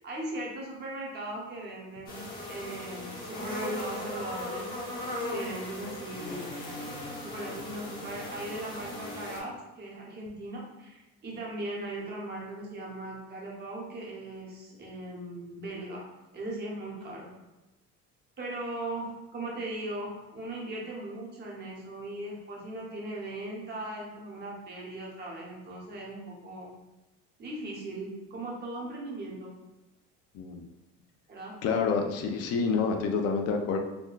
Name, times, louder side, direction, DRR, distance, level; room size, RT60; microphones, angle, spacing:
voice 1, 0.0-4.7 5.3-6.6 7.2-16.0 16.3-17.3 18.4-26.7 27.4-29.5 31.3-31.5, right 1 dB, 35° right, -3 dB, 0.9 m, -39 dB
sound 1, 2.1-9.4, left 1 dB, 30° left, 0.8 m, -38 dB
voice 2, 30.3-30.7 31.6-33.8, left 5 dB, 55° left, 4 dB, 0.5 m, -28 dB
3.6 x 2.1 x 2.3 m, 1.0 s
cardioid pair, 135°, 30 cm